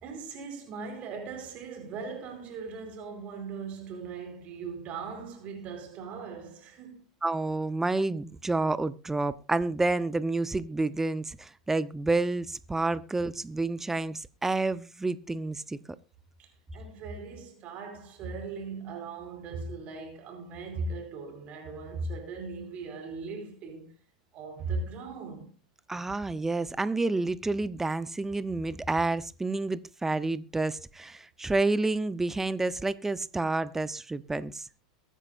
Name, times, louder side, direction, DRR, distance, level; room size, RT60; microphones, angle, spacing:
voice 1, 0.0-7.1 16.4-23.9 24.3-25.6, right 4 dB, 45° right, 4.4 m, -39 dB
voice 2, 7.2-15.8 25.9-34.7, right 2 dB, 10° right, 0.9 m, -29 dB
22.5 x 10.0 x 2.6 m
hypercardioid pair, 90°, 3 cm